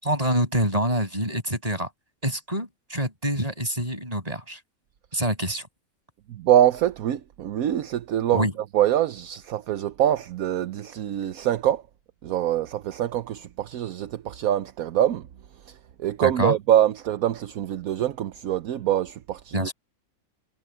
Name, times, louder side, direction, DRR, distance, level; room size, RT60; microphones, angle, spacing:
voice 1, 0.0-1.9 2.2-4.6 5.1-5.7 8.3-8.5 16.2-16.6 19.5-19.7, right 1 dB, 25° right, 7.5 m, -26 dB
voice 2, 6.3-8.4 8.7-11.8 12.2-15.2 16.0-19.7, right 11 dB, 70° right, 1.1 m, -24 dB
omnidirectional pair, 1.6 m